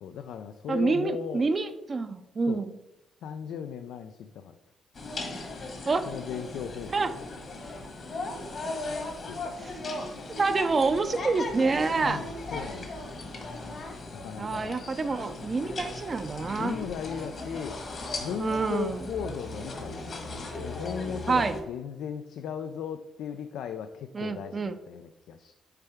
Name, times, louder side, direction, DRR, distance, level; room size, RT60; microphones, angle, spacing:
voice 1, 0.0-1.5 2.4-2.7 3.2-4.5 6.0-7.2 9.3-9.4 12.0-12.9 14.1-14.8 16.6-17.8 18.2-20.3 20.6-25.5, left 7 dB, 80° left, 8 dB, 0.3 m, -37 dB
voice 2, 0.7-2.8 5.9-6.0 6.9-7.1 9.6-9.7 10.4-12.2 14.4-16.8 18.4-19.0 21.3-21.5 24.1-24.8, right 4 dB, 35° right, 10 dB, 0.5 m, -27 dB
sound 1, 4.9-21.6, left 2 dB, 50° left, 1.3 m, -37 dB
6.7 x 4.4 x 3.5 m, 0.97 s
cardioid pair, 90°, 0 cm